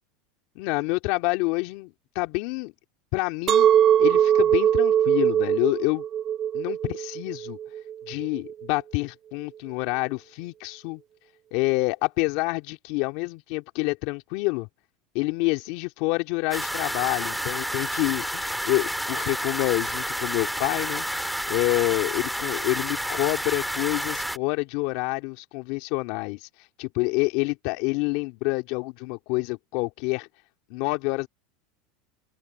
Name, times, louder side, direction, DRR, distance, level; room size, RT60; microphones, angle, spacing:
voice 1, 0.6-2.7 3.1-3.7 4.0-6.0 6.5-7.6 8.1-11.0 11.5-14.7 15.1-26.5 26.8-30.3 30.7-31.3, left 25 dB, 65° left, 2.4 m, -27 dB
Chink clink, 3.5-8.7, right 10 dB, 40° right, 0.6 m, -21 dB
sound 1, 16.5-24.4, equal, ahead, 2.0 m, -30 dB
supercardioid pair, 110°, 0 cm